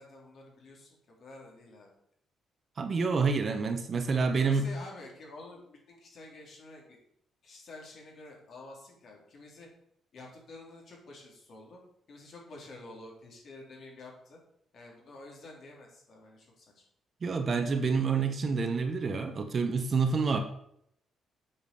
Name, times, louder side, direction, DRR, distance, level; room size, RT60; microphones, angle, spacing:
voice 1, 0.0-1.9 4.2-7.0 7.4-9.7 10.1-11.8 12.1-14.4 14.7-16.8, left 2 dB, 50° left, -1 dB, 3.9 m, -49 dB
voice 2, 2.8-4.6 17.2-20.4, right 4 dB, 35° right, 6 dB, 1.2 m, -28 dB
8.5 x 7.3 x 7.1 m, 0.72 s
cardioid pair, 145°, 0 cm